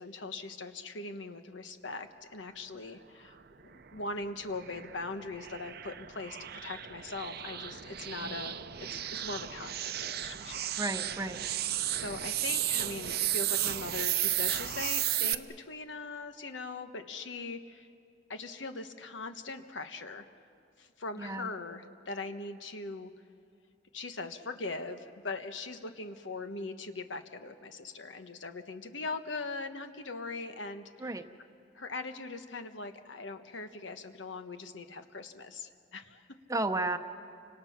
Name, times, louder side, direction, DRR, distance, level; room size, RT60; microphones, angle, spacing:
voice 1, 0.0-3.4 3.6-8.6 8.9-10.7 11.9-17.9 18.3-20.3 20.8-23.1 23.9-30.9 31.7-36.2, left 3 dB, 85° left, 8 dB, 1.3 m, -40 dB
sound 1, 3.8-15.3, right 12 dB, 60° right, 0.7 m, -34 dB
voice 2, 10.8-11.4 21.2-21.5 31.0-31.2 36.5-37.0, right 2 dB, 20° right, 8 dB, 0.8 m, -33 dB
30.0 x 26.0 x 5.9 m, 2.4 s
head